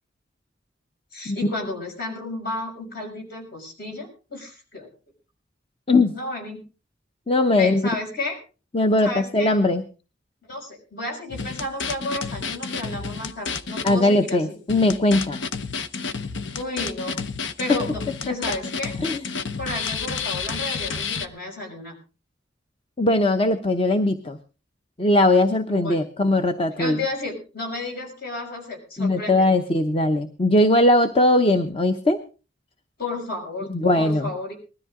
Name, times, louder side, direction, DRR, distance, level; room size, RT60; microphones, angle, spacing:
voice 1, 1.1-4.9 6.1-6.6 7.5-8.4 9.0-9.5 10.4-14.6 16.5-17.2 17.6-18.9 19.6-21.9 25.7-26.0 26.8-29.5 33.0-33.7 33.9-34.5, left 2 dB, 55° left, 2 dB, 6.3 m, -32 dB
voice 2, 7.3-7.8 8.7-9.8 13.8-15.4 19.0-19.2 23.0-24.4 25.0-27.0 29.0-32.2 33.7-34.5, left 1 dB, 30° left, 8 dB, 0.8 m, -20 dB
sound 1, 11.3-14.0 14.3-14.4 14.7-21.3, left 5 dB, 85° left, 0.9 m, -30 dB
20.0 x 13.5 x 3.7 m, 0.34 s
head